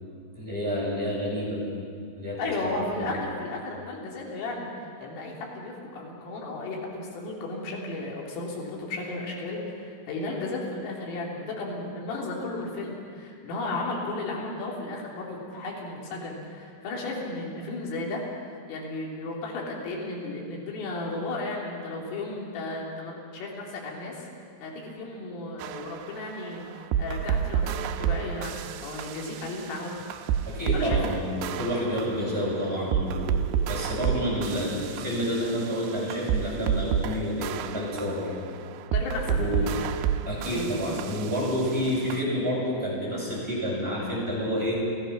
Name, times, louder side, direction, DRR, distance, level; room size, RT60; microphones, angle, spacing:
voice 1, 0.3-1.6 2.2-2.4 2.7-3.2 30.5-38.3 39.4-39.7 40.3-44.8, equal, 10° right, -6 dB, 7.4 m, -29 dB
voice 2, 2.4-4.7 5.0-24.3 24.6-29.9 30.2-30.4 30.7-31.0 38.9-39.9 40.5-41.0, left 2 dB, 90° left, -2 dB, 5.7 m, -34 dB
sound 1, 25.6-42.2, right 9 dB, 85° right, 2.5 m, -30 dB
30.0 x 16.5 x 6.0 m, 2.3 s
omnidirectional pair, 5.7 m